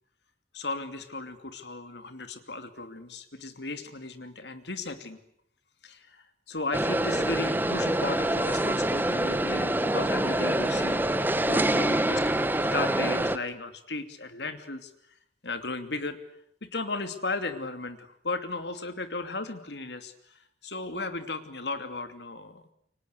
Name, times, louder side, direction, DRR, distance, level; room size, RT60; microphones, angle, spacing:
voice 1, 0.5-5.2 5.8-14.9 15.4-16.2 16.6-22.6, left 3 dB, 80° left, 9 dB, 2.8 m, -35 dB
sound 1, 6.7-13.4, right 1 dB, 10° right, 1.2 m, -26 dB
29.0 x 25.0 x 8.2 m, 0.71 s
head